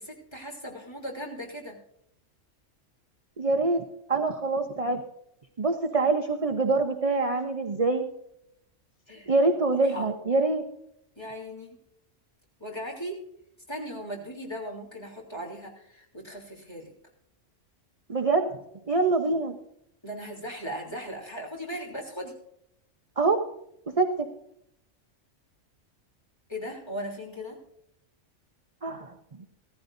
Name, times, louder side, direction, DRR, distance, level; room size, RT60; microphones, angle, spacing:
voice 1, 0.0-1.8 9.1-9.3 9.8-10.1 11.1-11.8 12.6-13.2 13.7-16.9 20.0-22.3 26.5-27.6 28.9-29.0, equal, 20° left, -1 dB, 3.3 m, -38 dB
voice 2, 3.4-3.8 4.1-5.0 5.6-8.0 9.3-10.6 18.1-18.5 18.9-19.5 23.2-23.4 24.0-24.3 28.8-29.1, right 3 dB, 30° right, 5 dB, 0.9 m, -25 dB
16.5 x 14.0 x 2.6 m, 0.76 s
omnidirectional pair, 1.3 m